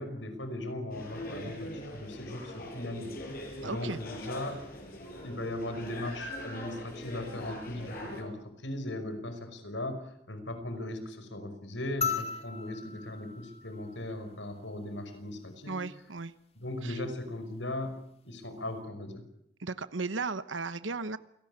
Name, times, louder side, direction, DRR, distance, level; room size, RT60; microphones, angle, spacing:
voice 1, 0.0-3.2 3.6-4.6 5.2-15.8 16.6-18.0 18.2-19.2, left 1 dB, 75° left, 9 dB, 5.5 m, -38 dB
sound 1, 0.9-8.2, left 1 dB, 50° left, 7.2 m, -42 dB
voice 2, 3.6-4.0 15.7-16.3 16.8-17.0 19.6-21.2, right 4 dB, 90° right, 14 dB, 1.1 m, -35 dB
sound 2, 12.0-14.6 16.2-16.3, left 6 dB, 30° left, 1.9 m, -37 dB
28.5 x 19.0 x 8.8 m, 0.75 s
head